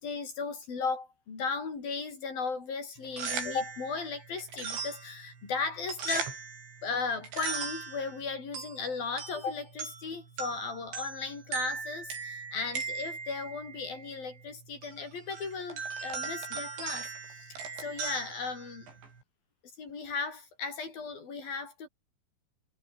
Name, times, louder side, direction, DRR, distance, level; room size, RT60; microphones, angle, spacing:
voice 1, 0.0-6.4 6.8-18.9 19.8-21.9, left 4 dB, 55° left, 7.5 m, -36 dB
sound 1, 3.0-19.2, right 5 dB, 80° right, 9.0 m, -39 dB
omnidirectional pair, 5.1 m